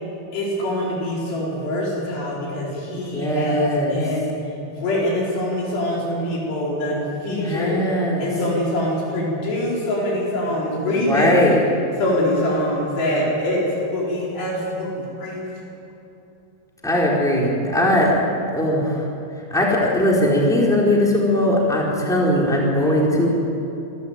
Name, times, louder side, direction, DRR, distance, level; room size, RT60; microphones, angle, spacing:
voice 1, 0.3-4.4 4.7-11.3 12.0-15.5, left 1 dB, 75° left, -5 dB, 6.5 m, -24 dB
voice 2, 3.1-4.0 7.3-8.3 11.0-11.6 16.8-18.2 18.5-19.0 19.5-23.3, left 1 dB, ahead, -4 dB, 3.8 m, -19 dB
27.5 x 13.0 x 9.0 m, 2.9 s
omnidirectional pair, 4.9 m